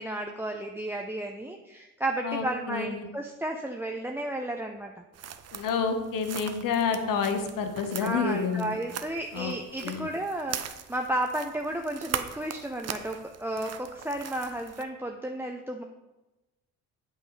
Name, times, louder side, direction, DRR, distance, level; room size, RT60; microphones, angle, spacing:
voice 1, 0.0-5.0 8.0-15.8, right 1 dB, 5° right, 2 dB, 0.8 m, -33 dB
voice 2, 2.2-3.1 5.5-8.8 9.3-9.5 9.8-10.1, left 5 dB, 55° left, 6 dB, 1.4 m, -29 dB
sound 1, 5.1-14.8, right 9 dB, 40° right, 0.8 m, -41 dB
8.6 x 8.2 x 3.3 m, 1.1 s
hypercardioid pair, 55°, 40 cm